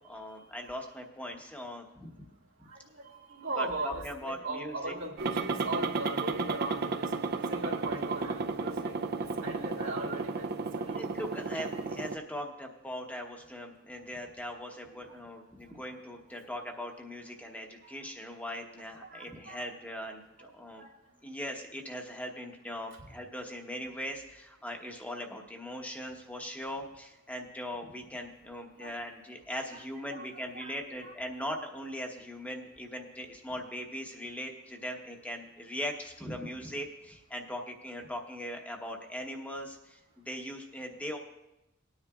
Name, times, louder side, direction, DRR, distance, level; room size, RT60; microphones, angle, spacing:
voice 1, 0.1-2.1 3.6-5.0 10.9-20.8 21.2-41.2, equal, 10° left, 2 dB, 1.0 m, -40 dB
voice 2, 2.7-7.1 7.5-8.9 9.2-10.5 10.7-11.1 15.7-15.8 17.8-18.0 18.8-19.6 20.4-20.5 20.8-20.9 28.8-29.0 29.7-29.8 30.1-31.1, right 2 dB, 85° right, -3 dB, 2.0 m, -39 dB
sound 1, 5.2-12.2, right 4 dB, 55° right, 0.5 m, -33 dB
19.5 x 9.7 x 2.4 m, 0.90 s
head